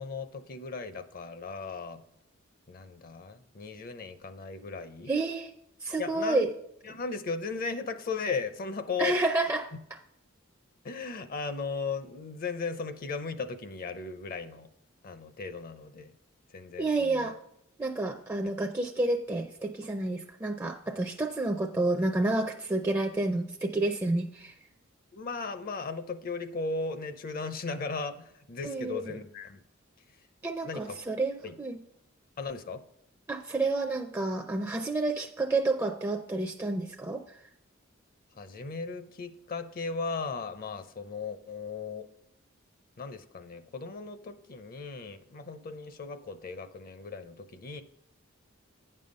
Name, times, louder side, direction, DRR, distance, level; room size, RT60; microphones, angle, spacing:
voice 1, 0.0-2.0 2.7-5.1 6.0-6.5 6.8-9.2 10.8-14.7 15.0-16.1 16.5-17.3 25.1-29.6 30.6-31.0 31.4-31.6 32.4-32.8 38.4-42.1 43.0-47.8, left 4 dB, 45° left, 11 dB, 0.6 m, -36 dB
voice 2, 5.1-5.5 5.8-6.5 9.0-9.7 16.8-17.4 17.8-24.5 28.6-29.1 30.4-31.8 33.3-37.2, right 2 dB, 15° right, 3 dB, 0.4 m, -29 dB
9.1 x 5.5 x 5.3 m, 0.75 s
head